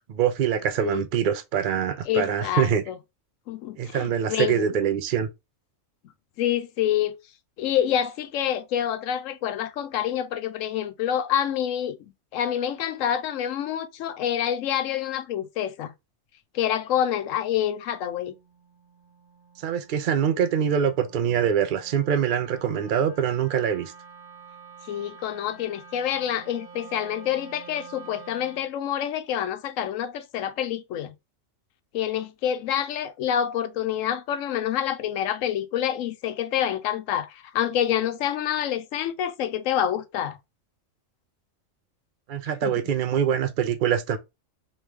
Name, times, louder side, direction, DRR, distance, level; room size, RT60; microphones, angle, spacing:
voice 1, 0.1-2.8 3.8-5.3 19.6-23.9 42.3-44.2, right 8 dB, 60° right, 0.5 m, -24 dB
voice 2, 2.0-3.0 3.5-4.7 6.4-7.1 7.6-15.9 16.5-18.3 24.9-31.1 31.9-40.4 42.6-42.8, left 10 dB, 75° left, 0.9 m, -27 dB
Wind instrument woodwind instrument, 17.1-28.7, right 5 dB, 10° right, 1.1 m, -48 dB
3.1 x 3.0 x 3.3 m
omnidirectional pair, 1.4 m